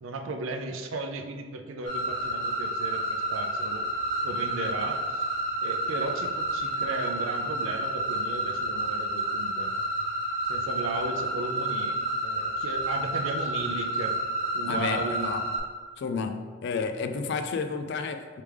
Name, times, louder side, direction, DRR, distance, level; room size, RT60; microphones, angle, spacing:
voice 1, 0.0-3.9 4.2-5.2 5.6-9.7 10.4-14.2 14.5-15.3, right 3 dB, 80° right, 0.5 m, -35 dB
sound 1, 1.8-15.6, right 1 dB, 45° right, 1.5 m, -30 dB
voice 2, 14.7-15.4 16.0-18.4, left 5 dB, 60° left, 0.3 m, -31 dB
3.3 x 3.3 x 4.8 m
head